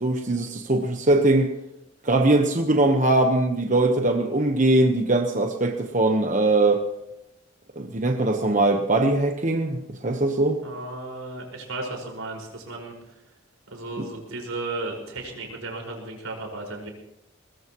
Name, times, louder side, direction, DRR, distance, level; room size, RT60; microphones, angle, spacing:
voice 1, 0.0-1.5 2.0-6.8 7.8-10.6 14.0-14.1, right 2 dB, 40° right, 4 dB, 1.1 m, -21 dB
voice 2, 10.6-13.1 13.7-16.9, right 2 dB, 90° right, 0 dB, 5.5 m, -34 dB
22.0 x 21.0 x 3.1 m, 0.84 s
head